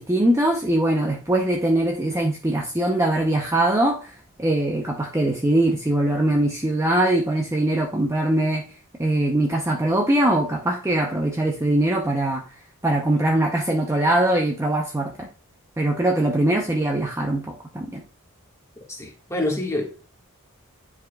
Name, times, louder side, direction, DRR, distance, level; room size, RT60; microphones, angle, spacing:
voice 1, 0.0-4.1 4.4-8.6 9.0-12.4 12.8-15.3 15.8-18.0, right 1 dB, 15° right, 0.6 m, -22 dB
voice 2, 18.9-19.9, left 1 dB, 15° left, 1.6 m, -26 dB
10.0 x 4.9 x 2.3 m
head